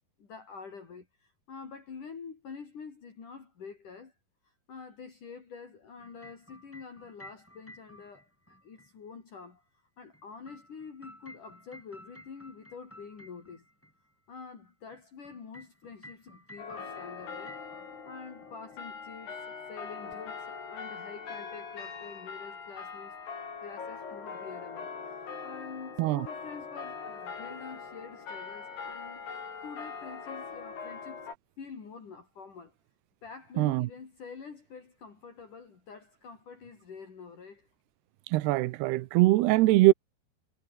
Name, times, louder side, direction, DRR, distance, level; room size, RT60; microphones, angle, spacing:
voice 1, 0.2-4.1 4.4-13.7 14.3-17.6 18.0-19.4 19.7-23.2 23.6-31.3 31.6-32.7 33.2-37.7, left 5 dB, 55° left, 5.5 m, -47 dB
sound 1, 6.0-8.9 10.1-13.9 14.9-18.2 18.4-18.8 20.1-20.2, equal, 5° left, 5.2 m, -53 dB
sound 2, 16.6-31.3, left 5 dB, 85° left, 7.7 m, -42 dB
voice 2, 33.6-33.9 38.3-39.9, right 18 dB, 90° right, 2.9 m, -23 dB
omnidirectional pair, 4.5 m